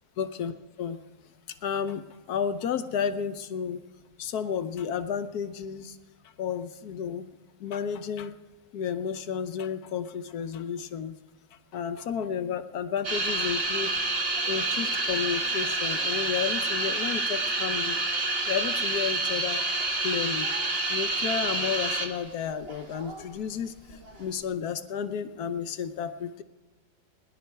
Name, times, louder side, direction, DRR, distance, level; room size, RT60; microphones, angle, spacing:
voice 1, 0.2-0.5 0.8-1.0 1.6-3.8 4.2-6.0 6.4-7.3 7.6-8.3 8.7-11.2 11.7-14.0 14.5-18.0 18.5-19.6 20.0-20.5 20.9-26.4, left 7 dB, 70° left, 10 dB, 1.2 m, -32 dB
sound 1, 13.0-22.3 22.6-23.2 23.9-24.2, right 2 dB, 35° right, 1.6 m, -28 dB
19.5 x 11.0 x 4.6 m, 1.2 s
omnidirectional pair, 1.8 m